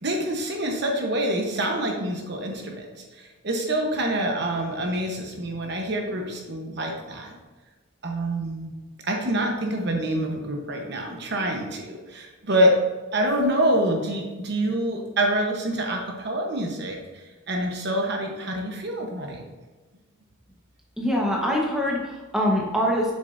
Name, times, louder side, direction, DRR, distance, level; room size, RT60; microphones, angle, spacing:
voice 1, 0.0-2.9 3.2-7.3 8.0-8.7 9.0-12.8 13.1-19.4, right 1 dB, 50° right, 1 dB, 1.0 m, -26 dB
voice 2, 21.0-23.1, equal, 5° right, -3 dB, 1.2 m, -24 dB
7.8 x 7.0 x 2.6 m, 1.2 s
head